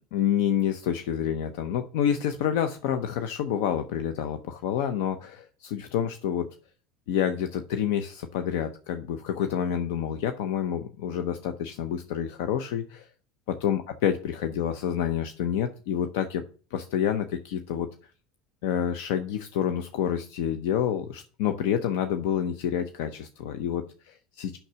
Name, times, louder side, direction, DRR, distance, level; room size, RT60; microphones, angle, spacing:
voice 1, 0.1-6.5 7.1-13.1 13.5-16.4 16.7-17.9 18.6-24.6, left 9 dB, 70° left, 8 dB, 0.7 m, -28 dB
6.6 x 6.0 x 5.7 m, 0.38 s
hypercardioid pair, 80°, 0 cm